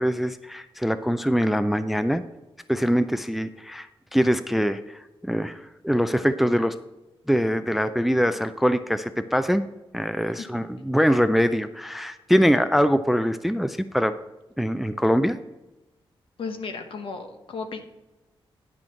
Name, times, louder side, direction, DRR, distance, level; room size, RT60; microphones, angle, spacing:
voice 1, 0.0-2.2 2.7-6.8 7.3-9.7 9.9-14.2 14.6-15.4, equal, ahead, 11 dB, 0.3 m, -23 dB
voice 2, 16.4-17.8, left 4 dB, 70° left, 6 dB, 1.1 m, -34 dB
10.5 x 6.2 x 4.4 m, 1.0 s
wide cardioid pair, 165°, 9 cm